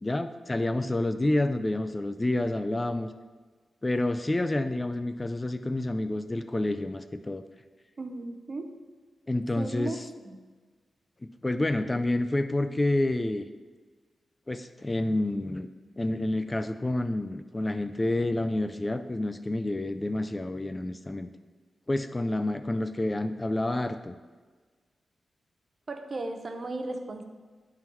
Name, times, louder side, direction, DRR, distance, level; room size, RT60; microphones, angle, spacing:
voice 1, 0.0-3.1 3.8-7.4 9.3-10.1 11.4-13.5 14.5-15.7 16.0-21.3 21.9-24.2, left 1 dB, 20° left, 10 dB, 0.3 m, -29 dB
voice 2, 8.0-8.7 9.5-10.0 10.2-10.4 25.9-27.2, right 2 dB, 45° right, 6 dB, 0.7 m, -35 dB
11.0 x 3.8 x 3.0 m, 1.4 s
cardioid pair, 70°, 0 cm